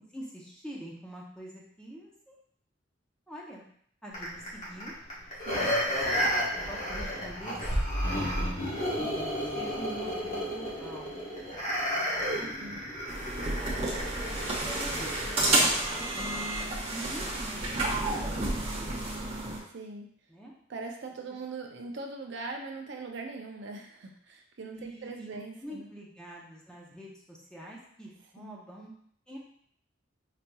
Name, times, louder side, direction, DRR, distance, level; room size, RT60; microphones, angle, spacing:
voice 1, 0.1-2.3 3.3-3.6 4.0-4.9 6.5-7.6 8.1-8.6 8.9-9.1 9.4-11.1 12.3-12.6 13.7-14.4 14.6-16.1 16.9-17.7 18.0-19.0 20.3-20.5 24.7-28.9 29.3-29.4, right 1 dB, 5° left, -3 dB, 0.7 m, -45 dB
sound 1, 4.1-15.6 16.0-16.1, equal, 40° left, 1.2 m, -32 dB
sound 2, 13.1-19.6, right 2 dB, 30° right, 0.9 m, -30 dB
voice 2, 19.6-20.1 20.7-25.9 28.4-28.6, right 3 dB, 65° right, 2 dB, 0.5 m, -41 dB
4.9 x 2.8 x 2.3 m, 0.65 s
head